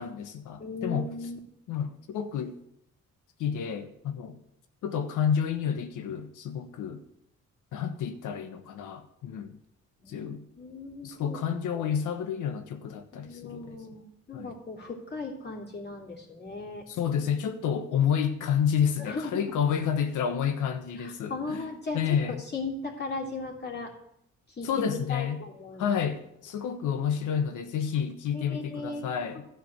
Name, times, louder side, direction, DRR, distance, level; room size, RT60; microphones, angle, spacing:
voice 1, 0.0-1.1 1.7-2.6 3.4-4.4 4.8-7.0 7.7-9.6 10.1-10.4 11.0-13.8 14.3-14.5 16.9-21.7 21.9-22.4 24.6-25.4 25.8-29.4, left 8 dB, 80° left, 1.3 m, -30 dB
voice 2, 0.6-1.4 10.0-11.4 11.7-11.9 13.1-16.8 19.0-19.5 21.0-22.0 22.5-23.9 24.6-26.0 28.3-29.0, left 3 dB, 35° left, 3.2 m, -37 dB
12.5 x 5.1 x 8.8 m
cardioid pair, 90°, 30 cm